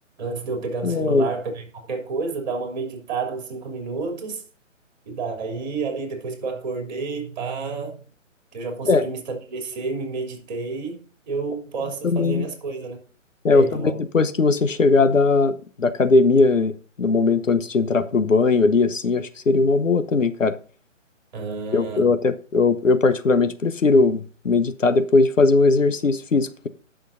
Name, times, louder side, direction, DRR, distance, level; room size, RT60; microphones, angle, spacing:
voice 1, 0.2-4.4 5.0-8.0 8.5-11.0 11.3-13.0 13.5-13.9 21.3-22.1, right 4 dB, 35° right, 3.1 m, -30 dB
voice 2, 0.8-1.3 8.9-9.0 12.0-12.5 13.4-20.5 21.7-26.7, left 3 dB, 75° left, 1.0 m, -19 dB
19.0 x 6.4 x 2.6 m
figure-of-eight pair, 145°, 39 cm